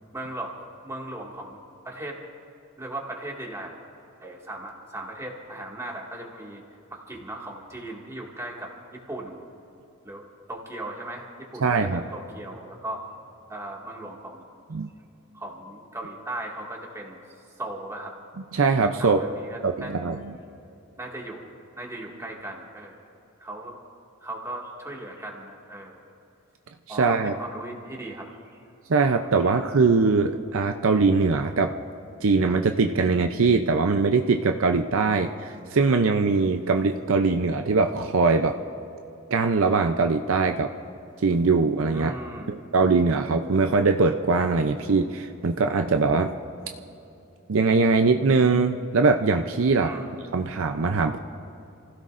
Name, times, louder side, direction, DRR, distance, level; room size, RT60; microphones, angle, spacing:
voice 1, 0.1-0.5 0.8-1.6 1.8-2.2 2.8-3.7 4.2-6.6 6.9-9.4 10.0-13.0 13.5-14.4 14.7-14.8 15.3-17.2 17.6-18.1 19.0-20.0 21.0-21.4 21.8-23.1 23.4-23.8 24.2-26.0 26.9-28.6 29.4-29.6 41.9-42.5 49.8-50.1, right 1 dB, 15° right, -2 dB, 2.0 m, -37 dB
voice 2, 11.6-12.0 14.7-14.9 18.5-19.2 19.6-20.3 26.9-27.3 28.9-31.8 32.2-38.6 39.3-40.7 41.2-42.1 42.5-46.3 47.5-49.9 50.3-51.2, right 4 dB, 65° right, 6 dB, 0.6 m, -22 dB
29.0 x 16.0 x 2.6 m, 2.9 s
head